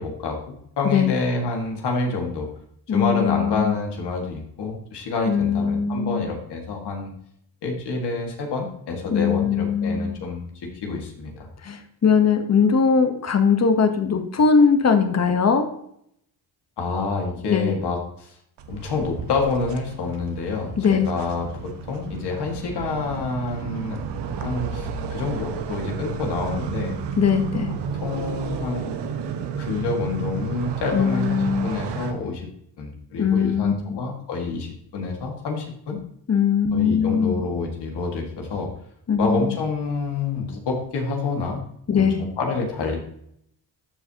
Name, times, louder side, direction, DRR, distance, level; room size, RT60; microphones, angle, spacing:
voice 1, 0.0-2.5 2.9-7.1 7.6-11.5 16.8-18.3 18.7-24.0 24.4-27.0 27.9-28.9 29.6-32.5 32.8-36.0 36.7-38.7 39.2-41.6 41.9-43.0, left 4 dB, 75° left, 1 dB, 2.0 m, -28 dB
voice 2, 0.8-1.2 2.9-3.8 5.3-6.3 9.1-10.1 11.6-15.7 17.5-17.8 20.8-21.1 27.2-27.7 30.9-31.7 33.2-34.0 36.3-37.4 39.1-39.6 41.9-42.2, left 6 dB, 40° left, 7 dB, 1.1 m, -20 dB
sound 1, 18.6-32.1, right 6 dB, 80° right, 1.0 m, -32 dB
13.5 x 4.7 x 2.9 m, 0.71 s
cardioid pair, 75°, 41 cm